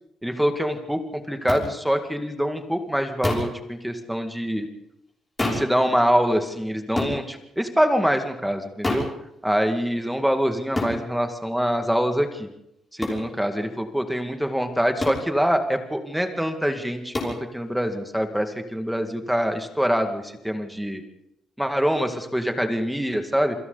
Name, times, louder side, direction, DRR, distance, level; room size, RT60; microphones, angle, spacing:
voice 1, 0.2-4.7 5.4-9.1 9.4-12.5 12.9-21.0 21.6-23.5, equal, ahead, 5 dB, 2.0 m, -24 dB
sound 1, 1.5-1.6 3.2-3.6 5.4-5.7 7.0-7.2 8.8-9.1 10.8-11.0 13.0-13.2 15.0-15.3 17.1-17.4, left 2 dB, 15° left, 5.9 m, -26 dB
28.0 x 25.0 x 4.0 m, 0.82 s
cardioid pair, 140°, 0 cm